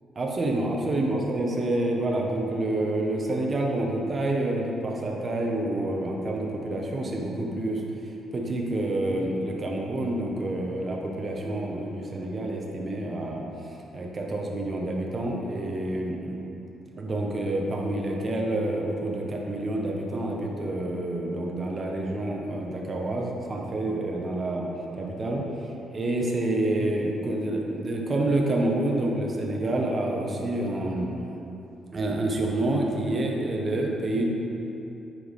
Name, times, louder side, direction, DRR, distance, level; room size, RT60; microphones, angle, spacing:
voice 1, 0.2-7.8 8.3-13.4 13.9-16.4 17.0-24.7 25.0-25.4 25.9-31.1 31.9-34.3, right 1 dB, 35° right, 0 dB, 1.1 m, -28 dB
10.5 x 4.5 x 3.7 m, 2.9 s
cardioid pair, 90°, 0 cm